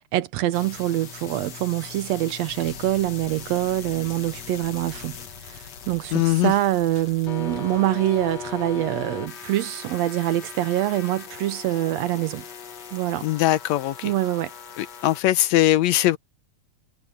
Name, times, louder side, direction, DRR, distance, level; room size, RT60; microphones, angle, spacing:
voice 1, 0.1-5.2 5.4-12.4 12.9-13.3 14.0-14.5, right 14 dB, 75° right, 1.8 m, -25 dB
sound 1, 0.5-15.2, left 6 dB, 45° left, 1.7 m, -39 dB
sound 2, 2.5-9.3, left 7 dB, 60° left, 2.1 m, -47 dB
voice 2, 6.1-6.5 13.2-14.1 14.8-16.2, left 14 dB, 80° left, 1.9 m, -21 dB
omnidirectional pair, 3.3 m